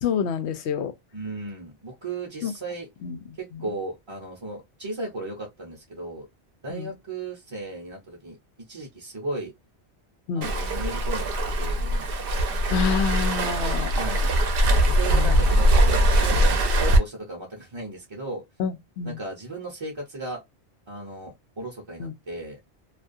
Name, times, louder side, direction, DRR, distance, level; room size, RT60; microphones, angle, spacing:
voice 1, 0.0-0.9 2.4-2.5 3.0-3.2 3.5-3.7 6.7-6.9 10.3-10.5 12.7-13.9 15.1-15.5 18.6-19.2 22.0-22.1, left 7 dB, 85° left, 0.9 m, -28 dB
voice 2, 1.1-2.9 3.4-6.3 6.6-9.5 10.3-12.1 14.0-14.3 14.9-18.4 19.0-20.4 20.9-22.6, right 2 dB, 30° right, 0.7 m, -36 dB
Waves surf, 10.4-17.0, right 1 dB, 65° right, 0.7 m, -21 dB
2.4 x 2.3 x 2.5 m
omnidirectional pair, 1.1 m